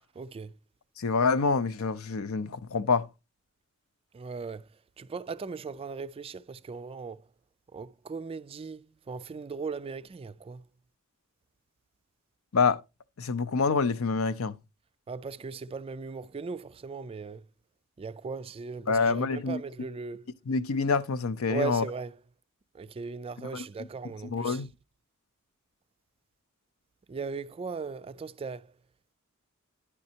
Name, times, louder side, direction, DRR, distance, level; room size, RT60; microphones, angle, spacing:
voice 1, 0.2-0.5 4.1-4.7 5.0-7.2 7.7-10.6 15.1-17.4 18.0-20.3 21.5-22.1 22.7-24.6 27.1-28.7, right 4 dB, 25° right, 0.3 m, -38 dB
voice 2, 1.0-3.1 12.5-12.8 13.2-14.6 18.9-19.6 20.5-21.8 23.4-23.9 24.2-24.7, left 4 dB, 75° left, 0.6 m, -27 dB
10.0 x 5.3 x 2.8 m
head